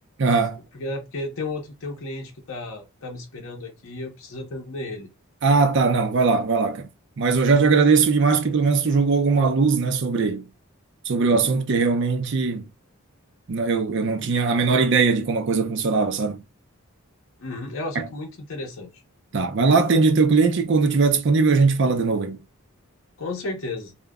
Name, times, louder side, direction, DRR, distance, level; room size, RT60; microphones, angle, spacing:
voice 1, 0.2-0.6 5.4-6.9 7.2-10.4 11.0-12.6 13.5-16.4 18.0-18.1 19.3-22.4, right 4 dB, 55° right, 0.5 m, -20 dB
voice 2, 0.7-5.1 17.4-18.9 23.2-23.9, left 2 dB, 60° left, 0.7 m, -33 dB
2.1 x 2.0 x 3.4 m
head